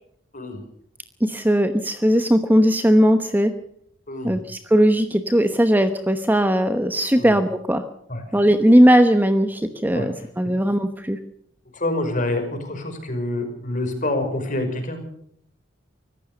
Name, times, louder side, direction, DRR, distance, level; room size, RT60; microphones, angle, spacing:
voice 1, 1.2-3.5 4.2-7.8 8.3-11.2, equal, 10° right, 8 dB, 1.0 m, -18 dB
voice 2, 4.1-4.4 7.2-7.3 8.1-8.2 9.9-10.3 11.7-15.0, left 1 dB, 40° left, 5 dB, 5.5 m, -27 dB
25.0 x 15.0 x 6.9 m, 0.69 s
head